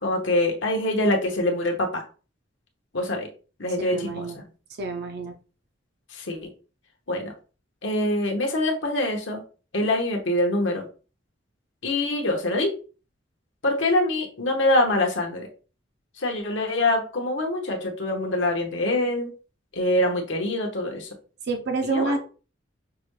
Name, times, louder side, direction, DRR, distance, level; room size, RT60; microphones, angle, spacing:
voice 1, 0.0-2.0 2.9-3.3 3.6-4.2 6.1-6.4 7.1-7.3 7.8-9.4 9.7-10.8 11.8-12.7 13.6-15.5 16.2-19.3 19.7-21.1 21.8-22.2, left 1 dB, 85° left, 1 dB, 1.2 m, -24 dB
voice 2, 3.8-4.4 4.8-5.4 21.4-22.2, right 3 dB, 60° right, 5 dB, 0.5 m, -28 dB
5.9 x 3.1 x 2.2 m, 0.36 s
head